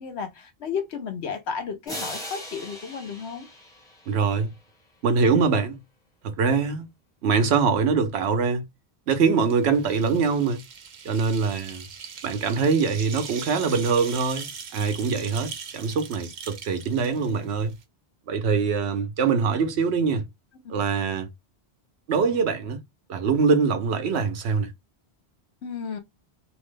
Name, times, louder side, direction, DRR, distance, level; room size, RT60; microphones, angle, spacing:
voice 1, 0.0-3.5 20.6-20.8 25.6-26.0, left 6 dB, 85° left, 1.1 m, -33 dB
sound 1, 1.9-4.7, equal, 5° left, 0.9 m, -39 dB
voice 2, 4.1-4.5 5.0-5.8 6.2-6.9 7.2-8.6 9.1-10.6 11.0-11.8 12.2-17.7 18.3-20.3 20.7-21.3 22.1-22.8 23.1-24.7, right 5 dB, 85° right, 0.9 m, -23 dB
sound 2, 9.4-17.8, right 6 dB, 55° right, 0.6 m, -40 dB
2.9 x 2.1 x 3.1 m
omnidirectional pair, 1.1 m